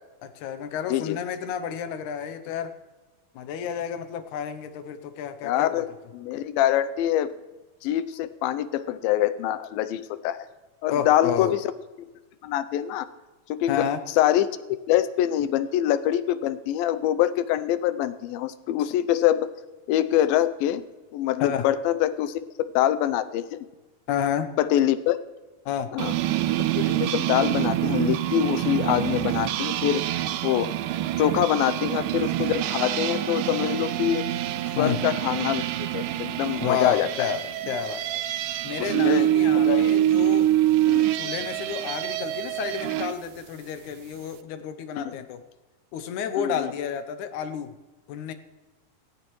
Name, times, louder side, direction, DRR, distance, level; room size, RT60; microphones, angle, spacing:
voice 1, 0.2-2.7 3.4-5.8 10.9-11.6 13.7-14.0 21.4-21.7 24.1-24.5 25.7-25.9 34.8-35.0 36.6-38.1 38.6-40.5 41.2-45.4 45.9-47.7 48.1-48.3, left 8 dB, 75° left, 10 dB, 1.9 m, -30 dB
voice 2, 5.4-5.9 6.1-7.3 7.8-10.5 10.8-11.7 12.4-13.1 13.5-13.9 14.2-14.5 14.9-19.5 19.9-20.8 21.1-22.4 22.8-23.6 24.6-25.2 25.9-26.1 26.7-30.0 30.4-30.7 31.2-34.2 34.8-35.6 35.9-37.3 38.8-39.3 39.5-39.9 40.9-41.1 45.1-45.2 46.4-46.7, left 12 dB, 90° left, 13 dB, 2.4 m, -24 dB
sound 1, 26.0-43.1, right 13 dB, 80° right, 2.0 m, -25 dB
17.5 x 15.5 x 3.1 m, 1.2 s
omnidirectional pair, 4.1 m